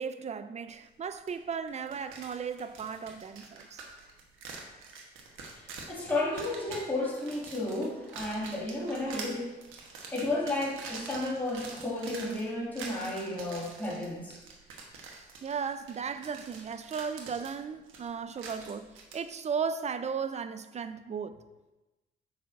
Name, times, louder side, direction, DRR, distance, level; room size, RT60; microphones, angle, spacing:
voice 1, 0.0-3.8 15.0-18.9 19.1-21.4, right 6 dB, 35° right, 0.4 m, -36 dB
sound 1, 1.3-1.4 1.7-19.2, right 4 dB, 85° right, 1.1 m, -46 dB
voice 2, 5.4-9.6 10.1-14.4, left 2 dB, 10° left, 2.2 m, -33 dB
8.2 x 5.7 x 2.6 m
cardioid pair, 90°, 20 cm